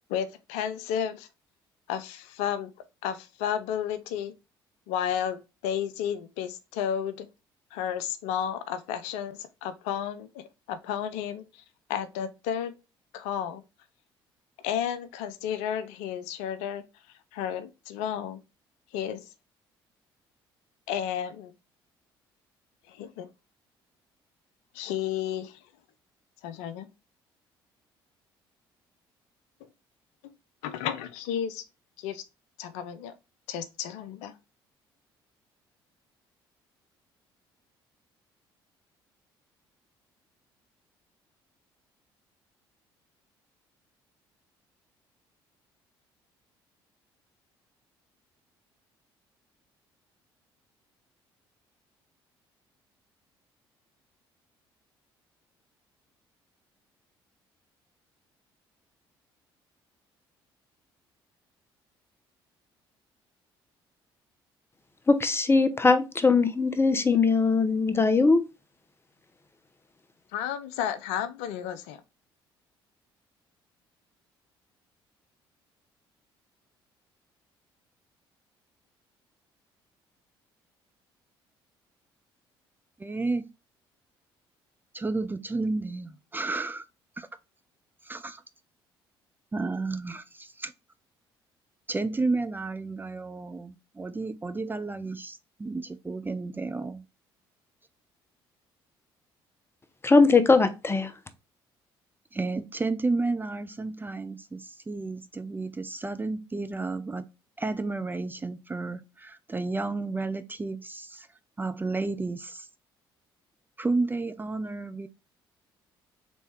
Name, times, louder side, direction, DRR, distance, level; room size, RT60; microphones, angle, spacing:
voice 1, 0.1-1.3 1.9-2.7 3.0-4.3 4.9-7.3 7.7-11.6 11.9-12.7 13.1-13.6 14.6-16.8 17.3-18.4 18.9-19.3 20.9-21.5 22.9-23.3 24.7-25.6 26.4-26.9 30.6-31.6 32.0-32.2 32.6-33.1 33.5-34.3 70.3-72.0, left 9 dB, 65° left, 0.5 m, -32 dB
voice 2, 65.1-68.4 100.0-101.1, left 4 dB, 20° left, 0.7 m, -21 dB
voice 3, 83.0-83.5 84.9-86.8 87.2-87.3 88.0-88.4 89.5-90.7 91.9-97.0 102.3-107.3 107.6-111.3 111.6-112.7 113.8-115.1, right 3 dB, 15° right, 0.4 m, -32 dB
4.1 x 3.4 x 3.2 m
figure-of-eight pair, 50°, 12 cm